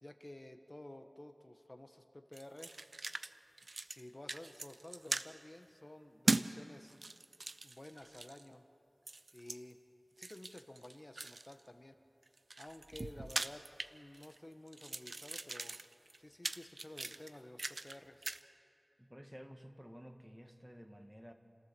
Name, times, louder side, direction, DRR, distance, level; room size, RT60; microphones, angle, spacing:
voice 1, 0.0-2.8 3.9-7.0 7.6-8.6 9.3-9.8 10.2-12.0 12.6-13.6 13.9-15.8 16.2-18.2, left 1 dB, 35° left, 6 dB, 1.2 m, -52 dB
sound 1, 2.3-3.3 3.6-4.0 4.3-5.3 6.3-6.5 6.9-8.5 9.1-9.6 10.2-11.6 12.2-14.4 14.7-18.0 18.2-18.4, right 2 dB, 70° right, 0.5 m, -40 dB
voice 2, 19.0-21.3, equal, 5° right, 5 dB, 1.7 m, -53 dB
29.5 x 14.0 x 6.9 m, 2.5 s
wide cardioid pair, 55°, 0 cm